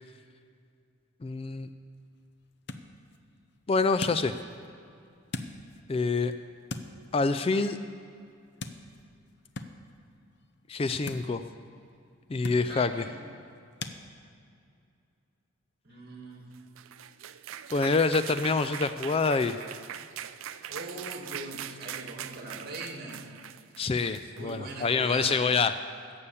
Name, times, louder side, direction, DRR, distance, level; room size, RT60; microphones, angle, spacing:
voice 1, 1.2-1.7 3.7-4.3 5.9-6.3 7.1-7.8 10.7-11.4 12.3-13.0 17.7-19.6 23.8-25.7, left 4 dB, 30° left, 11 dB, 0.3 m, -26 dB
sound 1, 1.5-14.0, left 3 dB, 55° left, 0.7 m, -45 dB
voice 2, 12.7-13.1 15.8-16.5 20.7-23.2 24.3-25.5, right 2 dB, 50° right, 0 dB, 2.2 m, -41 dB
sound 2, 16.5-24.8, right 10 dB, 70° right, 0.4 m, -42 dB
16.5 x 7.1 x 7.1 m, 2.4 s
head